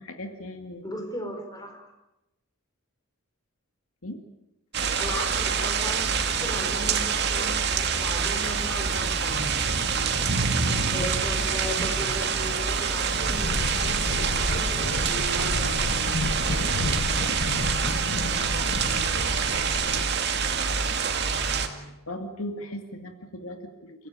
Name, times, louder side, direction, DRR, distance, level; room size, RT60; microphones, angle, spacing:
voice 1, 0.0-0.9 4.0-4.2 4.8-4.9 9.9-10.2 11.0-11.2 15.0-16.8 17.1-17.6 18.1-19.6 19.9-20.7 21.2-24.1, left 1 dB, 75° left, 5 dB, 2.3 m, -40 dB
voice 2, 0.8-1.8 4.9-9.6 10.9-15.8, equal, 20° left, 4 dB, 4.7 m, -37 dB
sound 1, 4.7-21.7, right 5 dB, 50° right, 2.2 m, -26 dB
sound 2, 13.3-20.0, left 2 dB, 60° left, 1.3 m, -31 dB
Marimba xylophone, 15.1-16.8, right 5 dB, 15° right, 5.8 m, -42 dB
29.5 x 16.0 x 9.0 m, 0.94 s
head